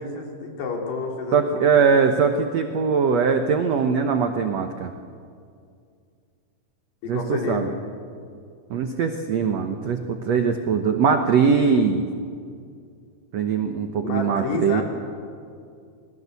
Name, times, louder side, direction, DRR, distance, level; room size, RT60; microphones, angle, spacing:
voice 1, 0.0-2.1 7.0-7.6 14.0-14.8, left 4 dB, 85° left, 1 dB, 5.7 m, -30 dB
voice 2, 1.3-4.9 7.1-7.7 8.7-12.1 13.3-14.8, right 6 dB, 75° right, 6 dB, 1.5 m, -21 dB
28.5 x 21.0 x 8.3 m, 2.3 s
omnidirectional pair, 4.7 m